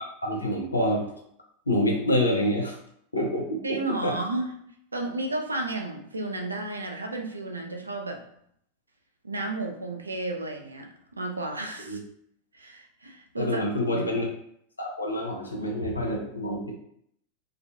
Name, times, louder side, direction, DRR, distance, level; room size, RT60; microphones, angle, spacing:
voice 1, 0.2-1.1 1.7-2.7 3.1-3.6 4.0-4.1 11.9-12.0 13.4-14.3 14.8-16.7, equal, 80° left, -1 dB, 0.5 m, -26 dB
voice 2, 3.6-4.6 4.9-8.2 9.2-12.0 12.5-13.6 13.9-14.1, right 2 dB, 80° right, 3 dB, 0.4 m, -32 dB
2.3 x 2.2 x 2.6 m, 0.70 s
figure-of-eight pair, 90°, 0 cm